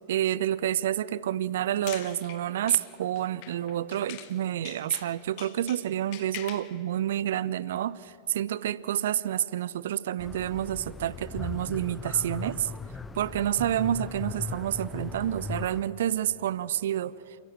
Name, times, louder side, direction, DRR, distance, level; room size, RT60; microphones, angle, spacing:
voice 1, 0.1-12.7 13.1-17.1, right 11 dB, 60° right, 20 dB, 0.5 m, -29 dB
sound 1, 1.6-4.4 4.6-6.7, left 13 dB, 45° left, 1.2 m, -43 dB
sound 2, 10.2-15.8, left 4 dB, 15° left, 0.7 m, -38 dB
28.5 x 15.5 x 7.4 m, 2.9 s
figure-of-eight pair, 90°, 0 cm